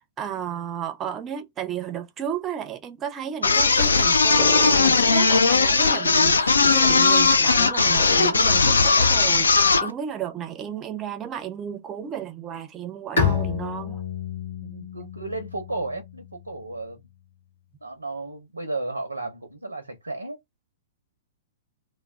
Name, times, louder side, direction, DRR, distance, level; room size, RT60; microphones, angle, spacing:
voice 1, 0.2-14.0, right 9 dB, 25° right, 0.5 m, -33 dB
sound 1, 3.4-9.9, left 4 dB, 75° left, 0.3 m, -18 dB
Drum, 4.4-7.7, left 5 dB, 30° left, 1.0 m, -37 dB
Bowed string instrument, 13.2-16.7, left 6 dB, 60° left, 1.0 m, -29 dB
voice 2, 14.6-17.0 17.8-20.4, right 2 dB, 85° right, 0.6 m, -33 dB
2.3 x 2.2 x 3.1 m
figure-of-eight pair, 110°, 0 cm